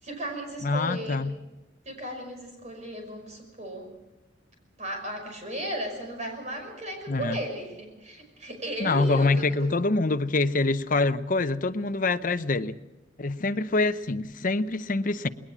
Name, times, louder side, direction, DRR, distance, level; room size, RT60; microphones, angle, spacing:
voice 1, 0.0-1.2 1.9-3.9 4.8-9.7, right 1 dB, 40° right, 4 dB, 5.6 m, -35 dB
voice 2, 0.6-1.3 7.1-7.4 8.8-12.7 13.2-15.3, left 3 dB, 45° left, 11 dB, 0.8 m, -25 dB
20.5 x 19.0 x 7.3 m, 1.0 s
head